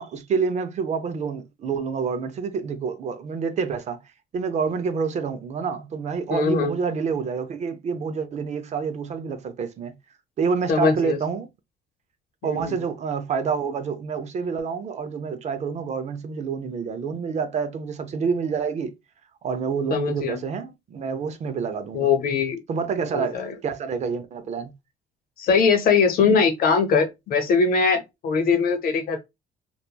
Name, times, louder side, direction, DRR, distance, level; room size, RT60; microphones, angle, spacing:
voice 1, 0.0-4.0 4.3-9.9 10.4-11.5 12.4-18.9 19.4-22.1 22.7-24.7, right 5 dB, 40° right, 0.5 m, -28 dB
voice 2, 6.3-6.7 10.7-11.2 12.4-12.8 19.9-20.4 21.9-22.6 23.1-23.5 25.4-29.2, left 5 dB, 60° left, 0.8 m, -21 dB
2.8 x 2.3 x 2.2 m
cardioid pair, 110°, 17 cm